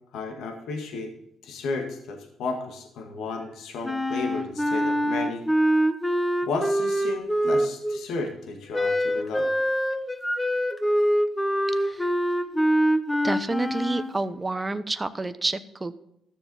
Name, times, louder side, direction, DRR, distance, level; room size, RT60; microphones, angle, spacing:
voice 1, 0.1-1.1 1.4-5.4 6.5-9.5, left 3 dB, 75° left, 4 dB, 1.9 m, -33 dB
Wind instrument woodwind instrument, 3.8-8.0 8.7-14.1, equal, 10° left, 1.1 m, -24 dB
voice 2, 11.7-12.1 13.2-16.0, right 2 dB, 20° right, 11 dB, 0.9 m, -29 dB
14.0 x 7.1 x 5.5 m, 0.80 s
cardioid pair, 90°, 0 cm